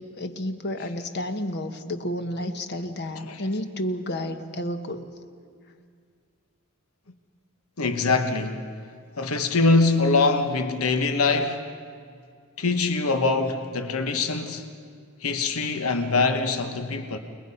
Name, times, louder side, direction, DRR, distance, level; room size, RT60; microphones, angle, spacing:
voice 1, 0.0-5.1, left 1 dB, 50° left, 1.3 m, -31 dB
voice 2, 3.1-3.5 7.8-8.7 9.2-11.6 12.6-14.7 15.2-17.2, left 3 dB, 80° left, 1.2 m, -23 dB
29.5 x 20.0 x 5.7 m
head